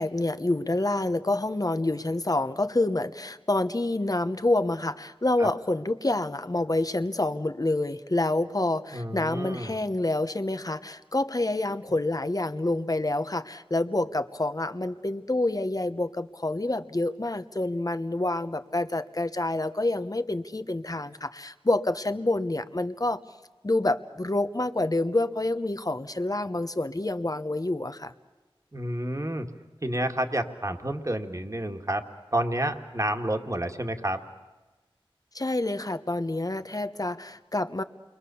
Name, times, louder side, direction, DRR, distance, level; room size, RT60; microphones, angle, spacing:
voice 1, 0.0-23.2 23.6-28.1 35.3-37.8, left 2 dB, 40° left, 10 dB, 1.1 m, -27 dB
voice 2, 8.9-9.8 28.7-29.5 29.8-32.0 32.3-34.2, right 1 dB, 35° right, 5 dB, 1.9 m, -29 dB
29.0 x 23.0 x 7.0 m, 1.2 s
wide cardioid pair, 45°, 9 cm